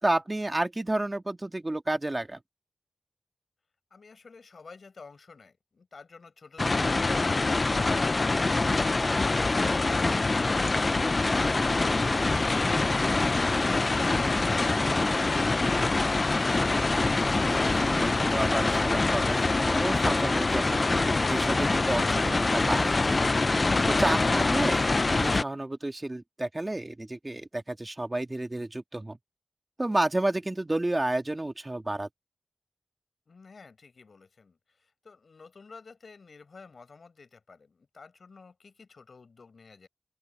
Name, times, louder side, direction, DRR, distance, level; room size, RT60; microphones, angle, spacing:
voice 1, 0.0-2.4 16.9-17.1 17.4-20.8 21.3-23.4 23.9-29.2 29.8-32.1, right 2 dB, 25° right, 2.2 m, -31 dB
voice 2, 3.9-7.6 8.0-11.0 11.5-15.1 24.1-24.4 33.3-39.9, left 4 dB, 65° left, 4.9 m, -51 dB
sound 1, 6.6-25.4, left 3 dB, 40° left, 0.4 m, -25 dB
open air
wide cardioid pair, 105°, 0 cm